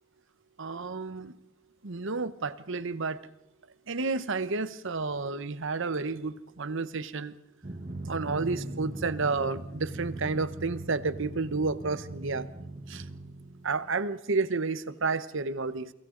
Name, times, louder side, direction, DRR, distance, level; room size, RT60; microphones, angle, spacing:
voice 1, 0.6-1.4 1.8-3.2 3.9-7.3 8.1-12.5 12.9-13.0 13.6-15.9, right 4 dB, 65° right, 1.0 m, -31 dB
Drum, 7.6-14.1, right 2 dB, 40° right, 1.2 m, -40 dB
29.0 x 24.5 x 3.9 m
head